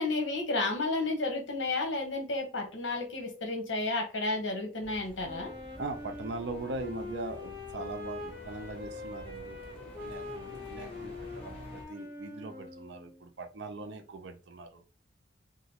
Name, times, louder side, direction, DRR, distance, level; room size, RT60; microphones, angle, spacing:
voice 1, 0.0-5.5, left 2 dB, 80° left, 1.0 m, -32 dB
sound 1, 4.8-11.8, left 1 dB, 30° left, 0.8 m, -49 dB
Wind instrument woodwind instrument, 5.2-13.2, left 3 dB, 10° left, 1.8 m, -43 dB
voice 2, 5.8-14.8, right 2 dB, 65° right, 0.5 m, -41 dB
2.9 x 2.6 x 2.9 m
head